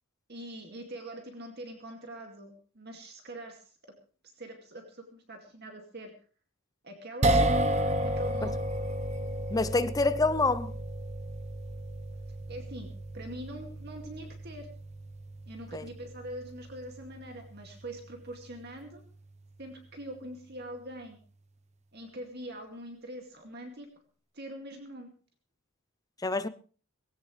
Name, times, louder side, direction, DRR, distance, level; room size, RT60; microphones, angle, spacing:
voice 1, 0.3-3.9 4.2-6.1 6.8-7.3 8.0-8.6 12.5-14.7 15.5-19.0 19.6-21.2 21.9-23.9 24.3-25.1, right 1 dB, 45° right, 2.3 m, -43 dB
sound 1, 7.2-19.5, right 1 dB, 30° right, 0.9 m, -33 dB
voice 2, 9.5-10.7 15.7-15.9 26.2-26.5, left 3 dB, 15° left, 0.6 m, -27 dB
18.5 x 16.0 x 3.3 m
head